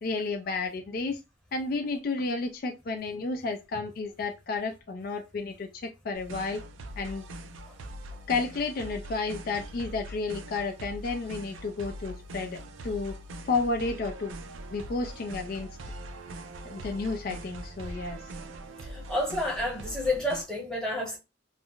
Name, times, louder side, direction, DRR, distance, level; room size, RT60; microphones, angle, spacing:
voice 1, 0.0-1.2 1.5-6.6 7.0-7.3 8.3-13.2 13.4-14.3 14.7-15.7 16.6-18.2, left 3 dB, 50° left, 0.3 m, -32 dB
sound 1, 6.1-20.4, right 1 dB, 90° right, 0.4 m, -42 dB
voice 2, 18.8-21.2, left 1 dB, 5° left, 1.0 m, -30 dB
2.4 x 2.0 x 3.7 m
head